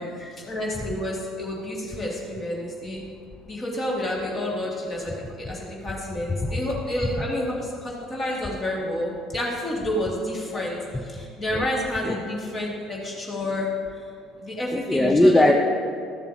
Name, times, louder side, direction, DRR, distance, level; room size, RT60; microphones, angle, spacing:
voice 1, 0.4-3.0 3.5-13.7 13.9-14.0 14.4-15.6, left 1 dB, 30° left, -3 dB, 2.2 m, -29 dB
voice 2, 14.7-15.5, left 1 dB, 10° left, 3 dB, 0.6 m, -20 dB
12.5 x 6.9 x 2.9 m, 2.2 s
figure-of-eight pair, 60°, 0 cm